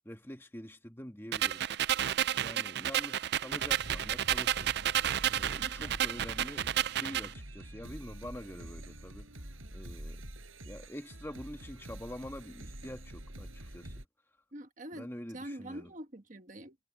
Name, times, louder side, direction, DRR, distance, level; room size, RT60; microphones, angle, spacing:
voice 1, 0.0-1.6 2.3-4.7 5.3-10.2 10.6-13.9 14.9-15.9, equal, 10° left, 1.5 m, -46 dB
sound 1, 1.3-7.3, right 11 dB, 55° right, 0.4 m, -31 dB
sound 2, 3.6-14.0, right 1 dB, 85° right, 5.4 m, -46 dB
voice 2, 5.6-5.9 14.5-15.1 15.3-16.8, right 1 dB, 40° right, 1.4 m, -45 dB
head